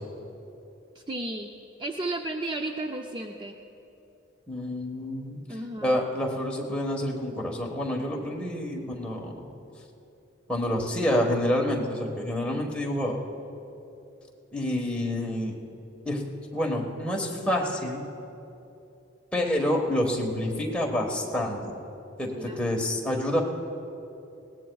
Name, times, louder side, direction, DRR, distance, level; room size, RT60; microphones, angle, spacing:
voice 1, 1.1-1.5 1.8-3.6 5.5-6.0 12.4-12.7 22.4-22.9, right 2 dB, 25° right, 3 dB, 0.4 m, -34 dB
voice 2, 4.5-5.4 5.8-9.5 10.5-13.2 14.5-15.5 16.0-16.2 16.5-18.0 19.3-21.7 22.2-23.4, left 1 dB, 5° left, -1 dB, 1.3 m, -28 dB
20.5 x 18.0 x 2.3 m, 2.8 s
head